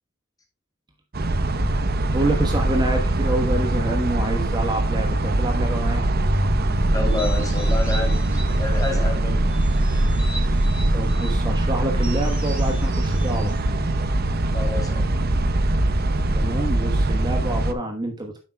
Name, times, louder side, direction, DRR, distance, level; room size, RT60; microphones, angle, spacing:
sound 1, 1.1-17.7, right 1 dB, 50° right, 0.8 m, -22 dB
voice 1, 2.1-6.1 10.9-13.5 16.3-18.3, right 1 dB, 20° right, 3 dB, 1.2 m, -27 dB
voice 2, 6.9-8.2 8.5-9.5 14.5-15.3, left 2 dB, 20° left, 2 dB, 2.8 m, -29 dB
sound 2, 7.0-9.1 9.5-11.4 12.0-14.5, right 1 dB, 5° right, 3.8 m, -40 dB
10.0 x 7.6 x 2.2 m, 0.34 s
head